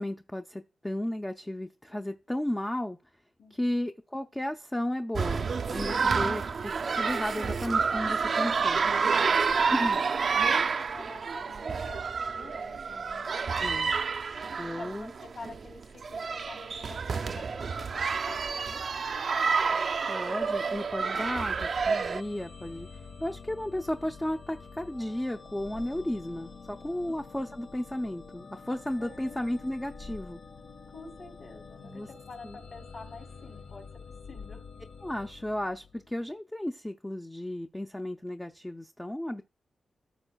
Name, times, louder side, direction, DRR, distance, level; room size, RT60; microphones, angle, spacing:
voice 1, 0.0-3.0 3.5-8.8 9.7-10.0 13.6-13.9 14.6-15.1 20.1-22.9 23.2-30.4 31.8-32.1 32.4-32.6 35.0-39.4, left 1 dB, 10° left, 0.4 m, -34 dB
voice 2, 3.4-3.8 9.5-13.3 14.4-19.8 27.0-27.2 29.0-29.6 30.9-34.0 34.3-34.6, left 3 dB, 55° left, 3.0 m, -48 dB
sound 1, 5.2-22.2, right 5 dB, 55° right, 0.4 m, -29 dB
sound 2, 21.5-36.2, left 4 dB, 80° left, 1.2 m, -47 dB
14.5 x 6.3 x 2.3 m
wide cardioid pair, 125°, 0 cm